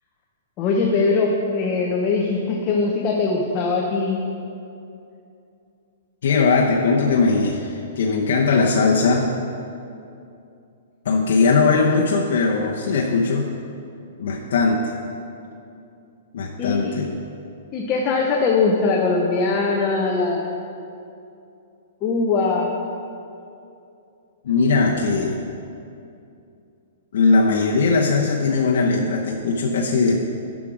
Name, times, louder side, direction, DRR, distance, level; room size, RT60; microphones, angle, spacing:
voice 1, 0.6-4.2 16.6-16.9 17.7-20.5 22.0-22.7, left 4 dB, 20° left, -1 dB, 0.6 m, -21 dB
voice 2, 6.2-9.3 11.0-13.5 14.2-14.9 16.3-17.1 24.4-25.4 27.1-30.2, left 4 dB, 60° left, -2 dB, 0.8 m, -19 dB
11.0 x 6.0 x 5.0 m, 2.6 s
hypercardioid pair, 175°, 0 cm